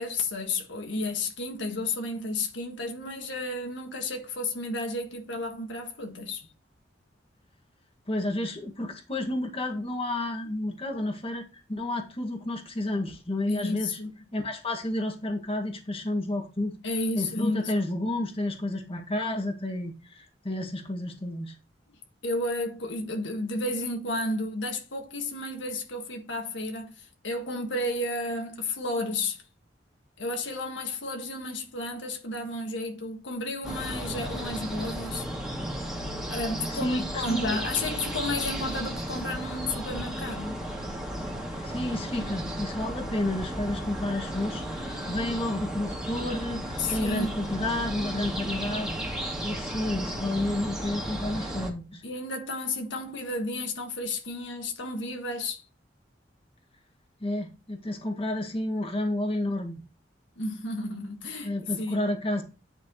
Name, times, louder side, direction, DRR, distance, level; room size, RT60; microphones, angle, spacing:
voice 1, 0.0-6.5 13.4-14.1 16.8-17.8 22.2-29.4 30.2-35.2 36.3-40.6 46.8-47.5 52.0-55.6 60.4-62.1, left 2 dB, 80° left, 1.7 m, -32 dB
voice 2, 8.1-11.4 11.7-14.0 14.3-16.8 17.1-21.5 36.7-37.6 41.6-48.9 49.4-52.0 57.2-59.8 60.9-61.0 61.4-62.4, left 1 dB, 30° left, 1.9 m, -31 dB
sound 1, 33.6-51.7, equal, 5° right, 2.3 m, -34 dB
9.9 x 6.1 x 3.0 m
head